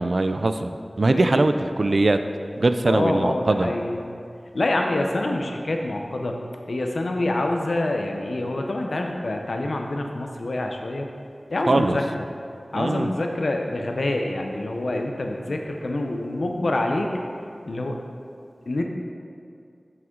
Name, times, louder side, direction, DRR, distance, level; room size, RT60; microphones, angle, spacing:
voice 1, 0.0-2.2 2.6-3.7 11.7-12.0 12.7-13.1, right 2 dB, 70° right, 9 dB, 0.3 m, -21 dB
voice 2, 1.1-1.5 2.8-4.0 4.5-6.4 6.7-11.1 11.5-12.3 12.7-17.1 17.6-18.0 18.7-18.8, left 2 dB, 85° left, 2 dB, 0.6 m, -26 dB
7.8 x 6.0 x 3.7 m, 2.4 s
wide cardioid pair, 50°, 0 cm